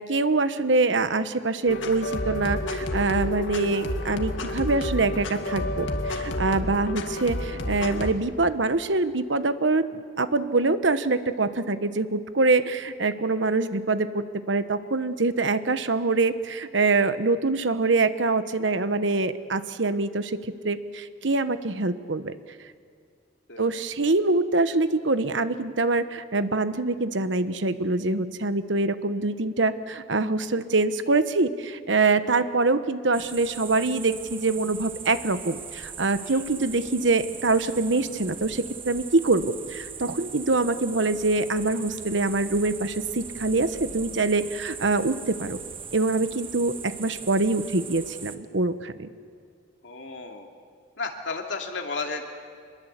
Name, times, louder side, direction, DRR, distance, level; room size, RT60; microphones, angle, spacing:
voice 1, 0.0-22.3 23.6-45.6 45.9-49.1, right 3 dB, 70° right, 11 dB, 1.2 m, -24 dB
sound 1, 1.7-8.1, left 1 dB, 85° left, 2.1 m, -30 dB
voice 2, 23.5-23.8 36.2-36.4 49.8-50.5 51.0-52.2, left 4 dB, 70° left, 3 dB, 2.7 m, -33 dB
sound 2, 33.1-48.4, right 6 dB, 30° right, 1.4 m, -40 dB
26.5 x 21.5 x 8.2 m, 2.2 s
head